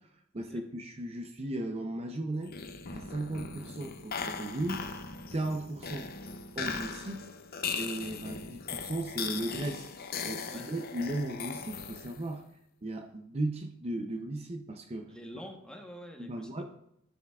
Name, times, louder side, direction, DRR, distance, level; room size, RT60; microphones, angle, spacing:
voice 1, 0.0-2.6 2.9-4.8 5.3-6.1 6.6-7.2 7.8-9.9 10.2-12.4 12.8-15.2 16.2-16.6, right 1 dB, 30° right, 4 dB, 0.6 m, -36 dB
sound 1, 2.4-12.3, left 5 dB, 50° left, 0.6 m, -39 dB
voice 2, 15.1-16.6, equal, 5° left, 1 dB, 1.0 m, -47 dB
13.0 x 7.0 x 2.4 m, 0.75 s
head